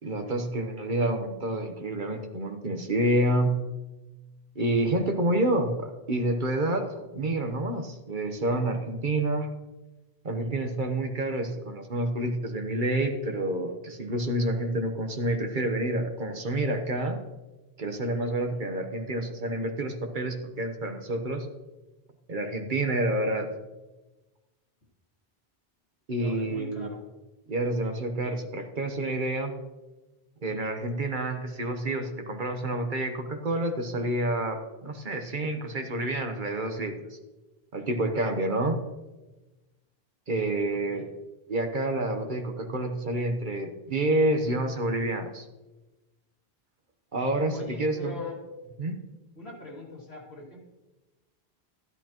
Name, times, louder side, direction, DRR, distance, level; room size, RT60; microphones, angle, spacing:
voice 1, 0.0-3.6 4.5-9.5 10.2-17.2 17.8-21.5 22.3-23.5 26.1-26.9 27.5-29.5 30.4-37.1 37.7-38.8 40.3-41.0 41.5-45.5 47.1-48.1 48.8-49.0, right 1 dB, 50° right, 5 dB, 1.1 m, -28 dB
voice 2, 26.2-27.0 40.7-41.0 47.5-48.4 49.4-50.6, left 3 dB, 80° left, -3 dB, 2.6 m, -41 dB
13.5 x 11.5 x 3.0 m, 1.1 s
omnidirectional pair, 1.1 m